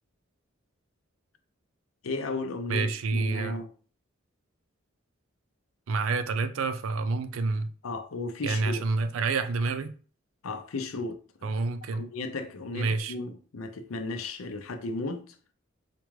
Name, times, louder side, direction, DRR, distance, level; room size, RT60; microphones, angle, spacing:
voice 1, 2.0-3.7 7.8-8.8 10.4-11.5 11.9-15.3, left 2 dB, 85° left, 0.6 m, -35 dB
voice 2, 2.7-3.6 5.9-7.7 8.4-9.9 11.4-12.0 12.7-13.1, right 3 dB, 80° right, 0.4 m, -28 dB
4.4 x 2.4 x 3.1 m
head